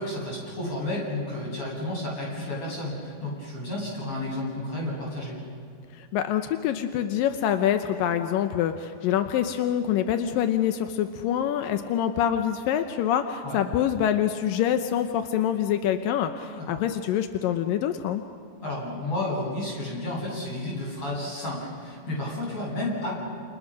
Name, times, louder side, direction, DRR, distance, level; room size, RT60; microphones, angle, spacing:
voice 1, 0.0-5.4 13.4-13.6 16.6-16.7 18.6-23.1, left 1 dB, 30° left, -3 dB, 8.9 m, -31 dB
voice 2, 6.0-18.2, left 10 dB, 75° left, 7 dB, 2.1 m, -25 dB
29.5 x 29.0 x 6.3 m, 2.3 s
omnidirectional pair, 5.0 m